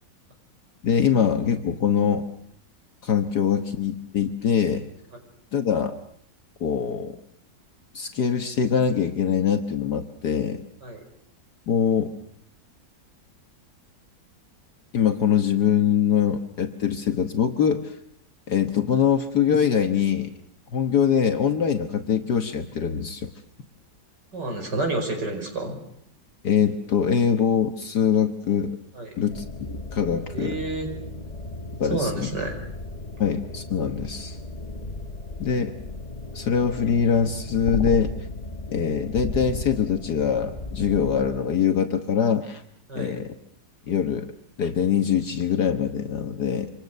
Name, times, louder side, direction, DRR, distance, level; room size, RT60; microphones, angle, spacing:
voice 1, 0.8-2.3 3.0-4.8 5.5-5.9 6.6-7.2 7.9-10.6 11.7-12.1 14.9-18.0 18.5-20.3 20.7-23.3 26.4-28.8 29.2-30.6 31.8-32.3 33.2-34.4 35.4-35.7 36.3-38.1 38.7-42.6 43.0-43.3 43.9-44.3 44.6-46.7, left 7 dB, 65° left, 6 dB, 1.8 m, -23 dB
voice 2, 24.3-25.8 29.0-29.1 30.3-30.9 31.8-32.6 42.9-43.2, right 2 dB, 70° right, 4 dB, 5.7 m, -29 dB
sound 1, 29.3-41.4, left 2 dB, 25° left, 1.5 m, -35 dB
27.5 x 26.0 x 6.7 m, 0.68 s
omnidirectional pair, 1.9 m